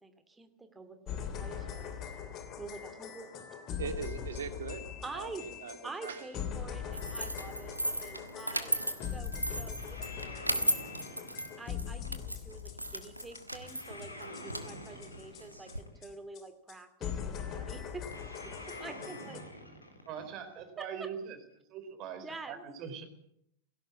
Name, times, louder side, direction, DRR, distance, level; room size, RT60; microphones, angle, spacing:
voice 1, 0.0-2.0 2.6-3.4 5.0-5.5 5.8-8.8 9.1-10.8 11.6-18.3 18.6-19.4 20.8-21.1 22.2-22.7, right 3 dB, 10° right, 9 dB, 2.5 m, -47 dB
sound 1, 1.1-15.8 16.0-16.1 16.3-16.4 16.7-16.8 17.0-19.4, left 8 dB, 35° left, 2.9 m, -42 dB
voice 2, 3.8-6.3, right 6 dB, 65° right, 8 dB, 2.4 m, -41 dB
sound 2, 6.9-15.8, right 1 dB, 85° right, 1.5 m, -36 dB
sound 3, 9.8-12.4 13.6-16.2 18.1-20.7, left 1 dB, 80° left, 3.7 m, -47 dB
voice 3, 20.1-21.4 21.7-23.1, right 7 dB, 40° right, 8 dB, 4.2 m, -42 dB
18.5 x 16.5 x 8.6 m, 0.72 s
figure-of-eight pair, 90°, 0 cm